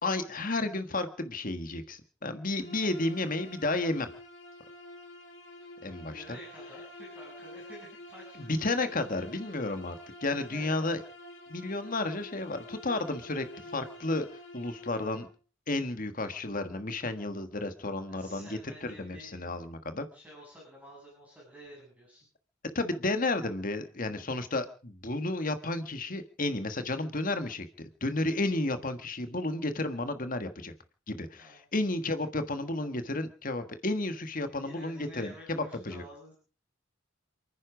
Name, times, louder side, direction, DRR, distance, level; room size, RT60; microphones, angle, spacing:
voice 1, 0.0-4.1 5.8-6.2 8.5-10.0 10.2-11.0 11.5-13.4 13.7-14.3 14.5-15.3 15.7-20.0 22.7-30.7 31.1-36.0, left 2 dB, 40° left, 9 dB, 1.6 m, -32 dB
Bowed string instrument, 2.6-15.3, left 1 dB, 65° left, 4.9 m, -48 dB
voice 2, 6.0-9.4 10.5-10.9 18.1-19.5 20.1-22.3 31.4-31.8 34.5-36.3, equal, 5° right, -3 dB, 7.8 m, -51 dB
28.5 x 10.0 x 5.0 m, 0.39 s
head